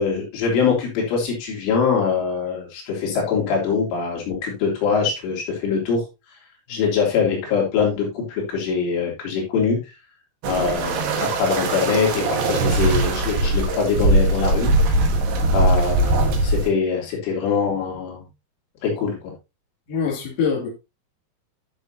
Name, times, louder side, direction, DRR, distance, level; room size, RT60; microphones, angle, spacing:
voice 1, 0.0-6.0 6.7-9.8 10.5-14.7 15.5-18.2 18.8-19.3, left 5 dB, 80° left, 5.4 m, -23 dB
sound 1, 10.4-16.7, right 2 dB, 65° right, 3.2 m, -20 dB
voice 2, 19.9-20.7, left 6 dB, 50° left, 4.2 m, -24 dB
12.5 x 6.6 x 2.8 m
omnidirectional pair, 5.6 m